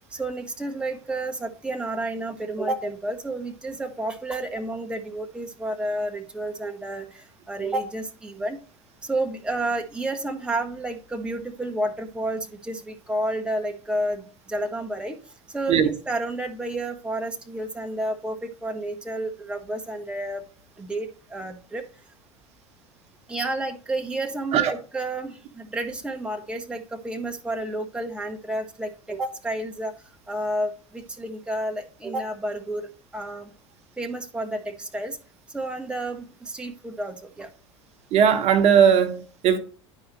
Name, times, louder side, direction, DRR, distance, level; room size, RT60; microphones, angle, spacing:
voice 1, 0.1-8.6 9.0-15.2 15.5-20.4 20.8-21.8 23.3-29.9 30.3-33.5 34.0-35.2 35.5-37.5, right 1 dB, 5° right, 0.9 m, -30 dB
voice 2, 38.1-39.6, right 8 dB, 45° right, 1.0 m, -18 dB
10.5 x 4.8 x 3.0 m
figure-of-eight pair, 75°, 15 cm